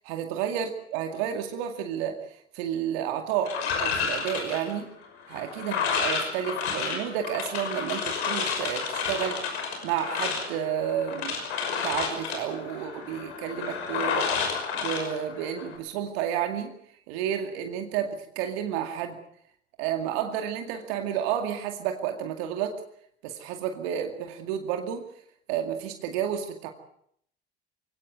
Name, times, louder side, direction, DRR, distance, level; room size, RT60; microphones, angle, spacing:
voice 1, 0.0-4.9 5.3-11.4 11.8-14.3 14.7-16.7 17.1-19.2 19.8-22.8 23.2-25.0 25.5-26.7, right 9 dB, 70° right, 5 dB, 2.3 m, -31 dB
sound 1, 3.5-15.8, left 6 dB, 80° left, 6.0 m, -31 dB
23.0 x 17.0 x 9.3 m, 0.71 s
hypercardioid pair, 65°, 31 cm